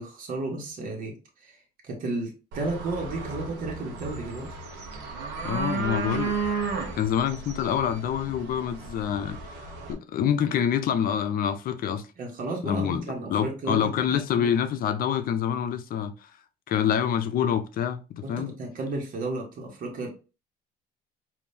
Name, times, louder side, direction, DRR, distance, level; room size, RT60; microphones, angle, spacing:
voice 1, 0.0-4.5 12.2-13.8 14.1-14.5 18.2-20.1, right 2 dB, 55° right, 1.4 m, -33 dB
sound 1, 2.5-9.9, right 4 dB, 90° right, 1.0 m, -34 dB
voice 2, 5.4-6.4 7.0-12.0 12.6-16.3 16.7-18.5, left 9 dB, 60° left, 0.6 m, -27 dB
5.2 x 2.7 x 2.7 m
cardioid pair, 110°, 17 cm